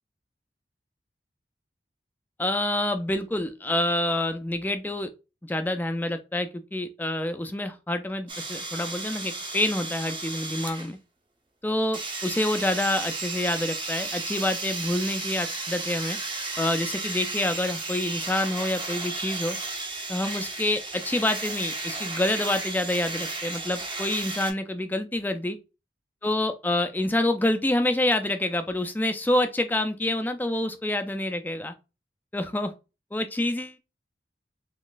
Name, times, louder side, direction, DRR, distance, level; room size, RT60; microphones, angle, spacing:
voice 1, 2.4-5.1 5.4-11.0 11.6-16.2 16.6-19.6 20.1-25.6 26.2-31.7 32.3-32.7 33.1-33.8, left 1 dB, 10° left, 0.3 m, -27 dB
sound 1, 8.3-10.9 11.9-24.5, right 3 dB, 25° right, 0.7 m, -34 dB
3.9 x 3.0 x 2.4 m
head